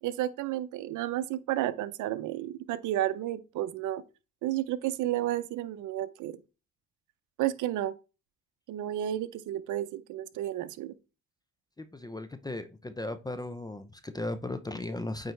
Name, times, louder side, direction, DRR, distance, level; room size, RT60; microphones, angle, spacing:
voice 1, 0.0-4.0 4.4-6.4 7.4-7.9 8.7-11.0, right 13 dB, 85° right, 0.6 m, -32 dB
voice 2, 11.8-15.3, left 2 dB, 15° left, 0.6 m, -36 dB
8.9 x 4.0 x 3.2 m
cardioid pair, 90°, 30 cm